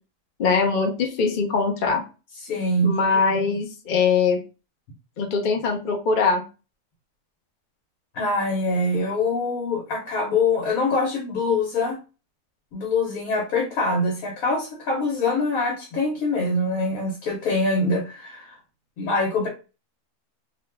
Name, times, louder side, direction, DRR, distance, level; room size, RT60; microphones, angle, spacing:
voice 1, 0.4-2.0 2.8-4.4 5.2-6.4, left 5 dB, 45° left, 2 dB, 0.7 m, -22 dB
voice 2, 2.4-2.9 8.1-12.0 12.7-18.6 19.0-19.5, left 2 dB, 75° left, 0 dB, 1.3 m, -24 dB
2.9 x 2.2 x 3.3 m, 0.31 s
omnidirectional pair, 1.5 m